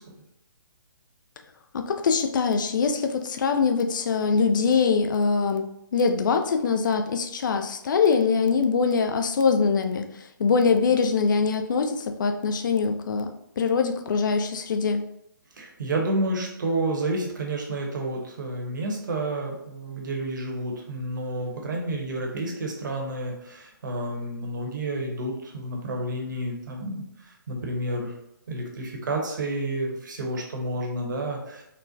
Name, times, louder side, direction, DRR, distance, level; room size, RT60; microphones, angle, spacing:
voice 1, 1.7-5.7 5.9-13.3 13.6-15.0, left 5 dB, 65° left, 5 dB, 0.4 m, -23 dB
voice 2, 15.6-28.1 28.5-31.6, right 1 dB, 65° right, 1 dB, 1.0 m, -30 dB
4.2 x 2.1 x 2.6 m, 0.82 s
hypercardioid pair, 145°, 11 cm